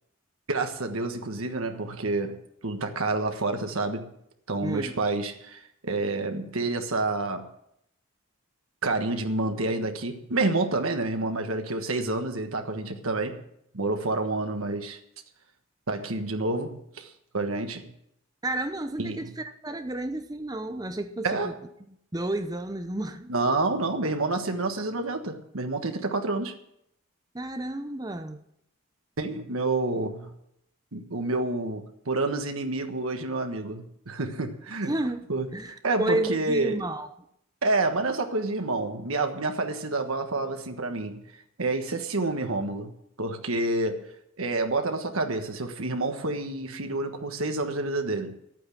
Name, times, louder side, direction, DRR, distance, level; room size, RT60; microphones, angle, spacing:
voice 1, 0.5-2.4 2.6-4.1 4.5-7.5 8.8-13.4 13.7-15.0 15.9-17.9 19.0-19.3 21.2-21.5 23.3-26.5 29.2-30.3 30.9-34.9 35.3-35.5 35.8-36.8 37.6-41.2 41.6-42.9 43.2-44.0 44.4-48.3, right 2 dB, 85° right, 1.4 m, -28 dB
voice 2, 4.6-4.9 18.4-21.5 22.1-23.3 27.3-28.4 34.9-35.2 35.5-37.1, right 1 dB, 20° right, 0.7 m, -31 dB
10.5 x 9.2 x 8.6 m
head